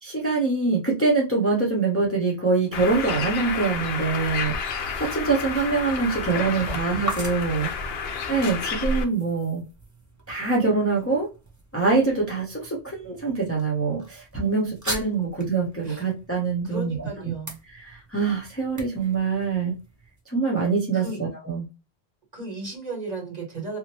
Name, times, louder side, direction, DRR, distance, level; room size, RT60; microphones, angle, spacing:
voice 1, 0.0-7.7 8.3-9.6 10.3-11.3 11.7-17.3 17.7-19.7 20.3-21.7, right 4 dB, 15° left, -3 dB, 0.6 m, -24 dB
sound 1, 2.4-20.2, right 1 dB, 20° right, 0.6 m, -42 dB
Bird, 2.7-9.0, left 4 dB, 70° left, 0.8 m, -30 dB
voice 2, 6.3-6.8 15.8-16.0 16.6-17.5 20.9-21.2 22.3-23.8, right 3 dB, 40° right, -3 dB, 1.6 m, -35 dB
2.9 x 2.1 x 2.9 m, 0.30 s
omnidirectional pair, 1.1 m